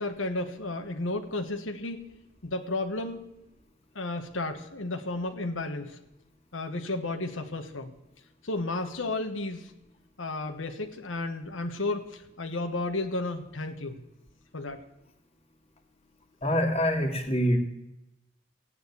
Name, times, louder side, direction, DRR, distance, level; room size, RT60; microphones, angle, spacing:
voice 1, 0.0-2.1 2.4-3.3 3.9-6.0 6.5-7.9 8.4-9.7 10.2-14.0 14.5-14.8, left 2 dB, 85° left, 5 dB, 1.3 m, -33 dB
voice 2, 16.4-17.6, equal, 30° left, 5 dB, 2.0 m, -25 dB
15.0 x 8.9 x 8.3 m, 0.91 s
head